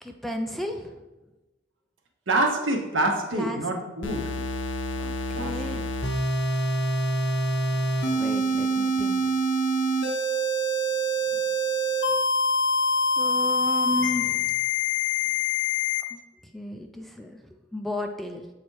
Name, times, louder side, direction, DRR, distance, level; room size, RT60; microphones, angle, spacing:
voice 1, 0.0-1.0 3.3-3.7 5.0-5.9 8.1-9.2 13.2-14.5 16.1-16.2 16.5-17.4 17.7-18.5, left 1 dB, ahead, 4 dB, 0.4 m, -33 dB
voice 2, 2.3-4.2 5.4-5.6, right 2 dB, 70° right, 3 dB, 1.1 m, -26 dB
sound 1, 4.0-16.0, equal, 65° left, 0.9 m, -25 dB
7.4 x 4.1 x 4.6 m, 1.1 s
head